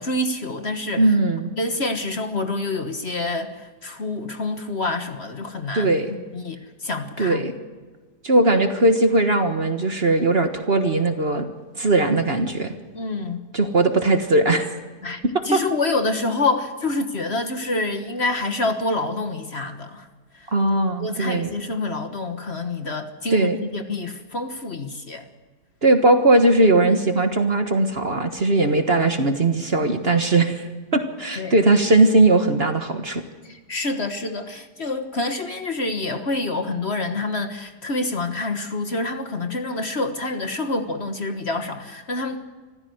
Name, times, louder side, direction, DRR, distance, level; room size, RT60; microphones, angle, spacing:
voice 1, 0.0-1.1 1.4-6.6 6.8-7.4 12.9-13.4 15.0-20.1 20.3-20.5 21.0-25.3 31.4-31.5 33.4-42.4, left 2 dB, 40° left, 7 dB, 1.6 m, -27 dB
voice 2, 1.0-1.5 5.7-6.1 7.2-7.5 8.2-11.5 11.8-12.7 13.5-14.7 15.5-15.6 20.5-21.5 23.3-23.6 25.8-30.6 30.9-33.2, right 2 dB, 40° right, 7 dB, 1.5 m, -19 dB
25.0 x 15.0 x 7.9 m, 1.3 s
omnidirectional pair, 1.8 m